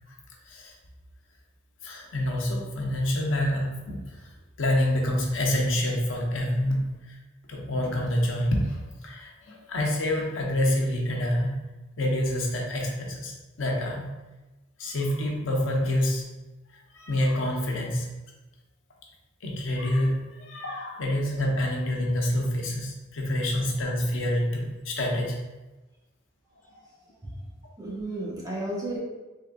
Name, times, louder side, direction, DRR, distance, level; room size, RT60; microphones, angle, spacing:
voice 1, 1.8-4.3 4.6-7.2 7.5-11.6 12.0-14.1 14.8-16.3 16.7-18.1 19.4-25.4, left 1 dB, 80° left, -1 dB, 0.7 m, -27 dB
voice 2, 26.6-27.5 27.8-29.0, right 1 dB, 20° right, -6 dB, 1.0 m, -34 dB
3.8 x 3.4 x 2.2 m, 1.1 s
head